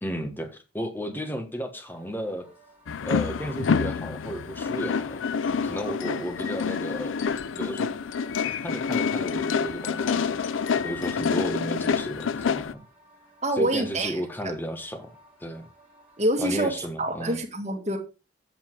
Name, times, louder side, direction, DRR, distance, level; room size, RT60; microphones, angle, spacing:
voice 1, 0.0-2.5 3.0-5.2 5.6-7.2 7.5-8.0 8.6-10.5 10.8-12.8 13.6-15.1 15.4-15.6 16.4-17.4, equal, 10° left, 1.3 m, -33 dB
sound 1, 1.8-16.8, right 2 dB, 10° right, 3.3 m, -55 dB
sound 2, 2.9-12.7, left 6 dB, 85° left, 0.5 m, -27 dB
voice 2, 13.4-14.2 16.2-16.7 17.0-18.0, right 1 dB, 35° right, 1.7 m, -26 dB
7.8 x 7.0 x 4.6 m
head